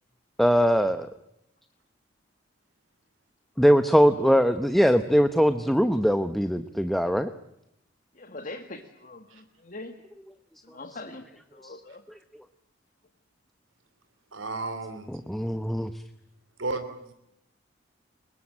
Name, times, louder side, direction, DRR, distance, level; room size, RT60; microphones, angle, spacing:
voice 1, 0.4-1.1 3.6-7.3 11.6-11.7 15.1-15.9, equal, ahead, 9 dB, 0.8 m, -21 dB
voice 2, 8.2-10.0 10.6-11.3 11.5-12.0, left 2 dB, 40° left, 6 dB, 1.8 m, -42 dB
voice 3, 14.3-15.1 16.6-17.1, right 3 dB, 85° right, 9 dB, 3.0 m, -33 dB
24.0 x 21.0 x 8.7 m, 0.83 s
head